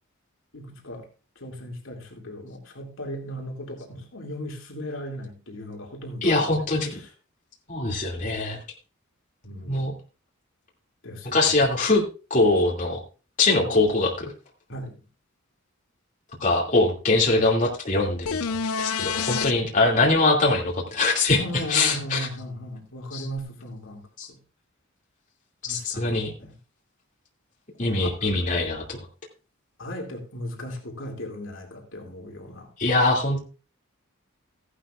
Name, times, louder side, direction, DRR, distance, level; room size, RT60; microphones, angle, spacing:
voice 1, 0.5-1.1 1.4-6.6 6.9-7.1 9.4-9.9 11.0-11.6 13.6-13.9 14.7-15.0 21.3-24.4 25.6-26.6 27.9-28.4 29.8-32.7, equal, 60° left, 2.5 m, -37 dB
voice 2, 6.2-7.0 7.7-8.6 9.7-9.9 11.3-12.0 12.3-13.0 13.4-14.3 16.4-18.4 18.8-21.4 21.7-22.3 23.1-23.2 24.2-24.3 25.7-26.3 27.8-29.0 32.8-33.4, left 2 dB, 35° left, 2.5 m, -22 dB
sound 1, 18.3-19.5 23.4-23.5, left 6 dB, 80° left, 0.5 m, -27 dB
15.5 x 11.5 x 2.5 m
head